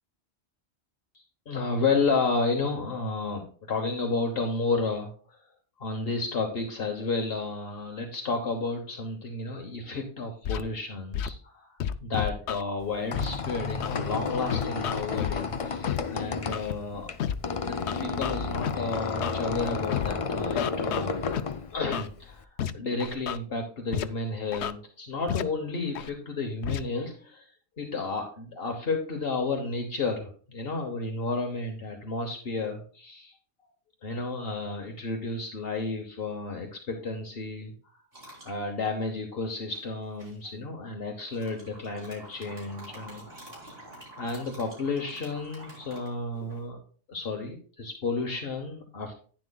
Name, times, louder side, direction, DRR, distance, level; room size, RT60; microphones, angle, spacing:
voice 1, 1.1-5.4 5.8-17.1 17.5-21.3 21.7-22.4 22.7-27.5 27.8-33.3 34.0-37.7 38.4-43.2 44.2-46.8 47.1-49.1, left 3 dB, 65° left, 3 dB, 1.3 m, -32 dB
Scratching (performance technique), 10.4-10.6 11.1-11.3 11.8-12.6 13.1-13.2 13.8-14.0 14.5-15.3 15.8-16.0 16.5-16.7 17.2-17.3 17.9-18.7 19.2-19.4 19.9-20.1 20.6-21.4 21.9-22.1 22.6-22.7 23.0-23.4 23.9-24.0 24.5-24.7 25.3-25.4 25.9-26.1 26.6-26.8, left 9 dB, 85° left, 0.9 m, -30 dB
Squeak, 12.8-22.4, left 5 dB, 40° left, 0.5 m, -32 dB
sound 1, 38.1-38.6 39.7-40.5 41.3-46.6, right 1 dB, 65° right, 3.9 m, -48 dB
10.5 x 9.8 x 2.3 m, 0.43 s
omnidirectional pair, 1.1 m